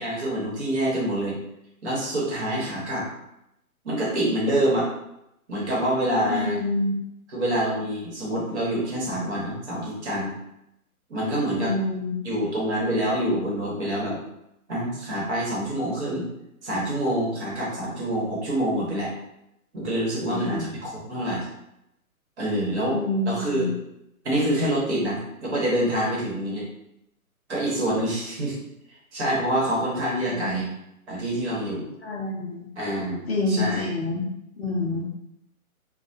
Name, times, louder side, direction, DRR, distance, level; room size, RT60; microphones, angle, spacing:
voice 1, 0.0-1.4 1.8-3.0 3.8-4.9 5.5-6.6 7.3-10.4 11.1-11.7 12.2-14.2 14.7-16.3 16.6-19.1 19.7-21.5 22.4-23.0 23.3-23.7 24.2-26.6 27.5-28.5 29.1-30.7 31.1-31.9 32.8-33.8, right 1 dB, 50° right, -5 dB, 1.1 m, -26 dB
voice 2, 6.2-6.9 11.6-12.1 20.3-20.7 22.9-23.7 30.2-30.6 32.0-32.7 33.3-34.3 34.6-35.1, left 2 dB, 45° left, -2 dB, 0.5 m, -27 dB
2.3 x 2.2 x 2.6 m, 0.83 s
hypercardioid pair, 150°, 44 cm